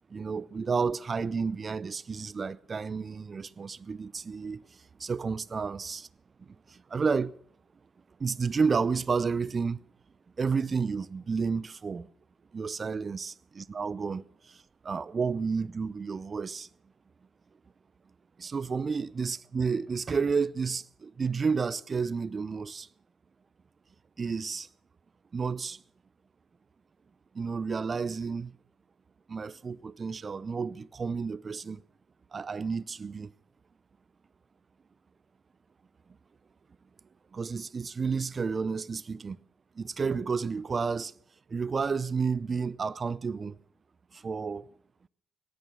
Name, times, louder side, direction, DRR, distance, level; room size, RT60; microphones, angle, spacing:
voice 1, 0.1-6.1 6.4-7.4 8.2-9.9 10.4-12.1 12.5-16.7 18.4-22.9 24.2-24.7 25.3-25.8 27.3-28.5 29.3-31.8 32.3-33.3 37.3-39.4 39.8-41.1 41.5-43.5 44.1-44.7, right 5 dB, 35° right, 0.6 m, -31 dB
18.0 x 12.0 x 6.2 m
hypercardioid pair, 45°, 0 cm